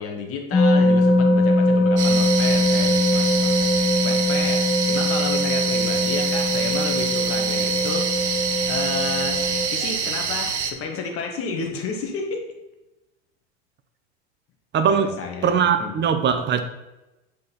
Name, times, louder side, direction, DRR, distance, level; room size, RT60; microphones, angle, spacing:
voice 1, 0.0-8.1 8.7-12.4 14.9-16.0, left 4 dB, 40° left, 2 dB, 1.8 m, -31 dB
sound 1, 0.5-9.7, left 1 dB, 10° left, 0.9 m, -21 dB
sound 2, 2.0-10.7, right 6 dB, 85° right, 0.9 m, -26 dB
voice 2, 14.7-15.1 15.4-16.6, right 7 dB, 30° right, 9 dB, 0.9 m, -20 dB
8.4 x 5.1 x 4.1 m, 1.0 s
hypercardioid pair, 85°, 34 cm